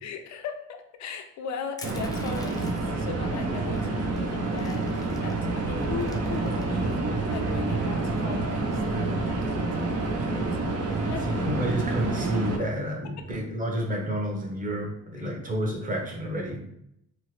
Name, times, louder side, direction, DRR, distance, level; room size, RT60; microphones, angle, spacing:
voice 1, 0.0-10.5 11.1-11.4 13.2-13.3 15.2-15.3, left 6 dB, 65° left, 6 dB, 0.5 m, -39 dB
Crushing, 1.8-3.0 3.8-3.9 4.2-5.4 5.8-6.9, left 2 dB, 15° left, 0.4 m, -46 dB
sound 1, 1.8-12.6, right 3 dB, 55° right, 0.6 m, -28 dB
sound 2, 3.0-10.4, equal, 75° right, 1.0 m, -45 dB
voice 2, 11.3-16.6, equal, 25° right, -1 dB, 0.8 m, -30 dB
2.9 x 2.2 x 3.1 m, 0.77 s
cardioid pair, 90°, 30 cm